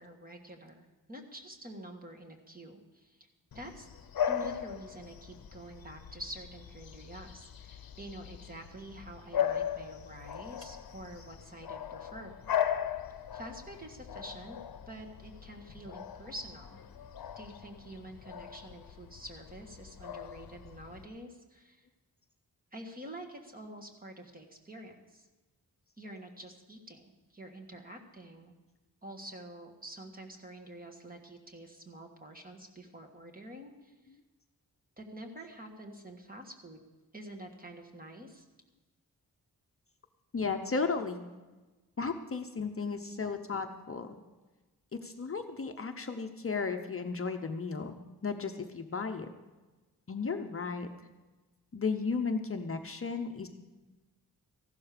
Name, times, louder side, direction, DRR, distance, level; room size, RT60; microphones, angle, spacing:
voice 1, 0.0-3.3 3.5-3.9 4.2-12.3 13.3-14.6 14.9-16.8 17.4-21.9 22.7-25.3 26.0-28.5 29.0-33.9 35.0-36.8 37.1-38.5, right 1 dB, 25° right, 3 dB, 1.5 m, -47 dB
Bark / Bird vocalization bird call bird song, 3.5-21.1, left 9 dB, 70° left, 0.8 m, -38 dB
voice 2, 40.3-41.3 42.0-44.2 44.9-49.3 50.1-50.9 51.7-53.5, left 4 dB, 35° left, 5 dB, 0.7 m, -34 dB
14.5 x 12.0 x 5.0 m, 1.2 s
wide cardioid pair, 175°, 36 cm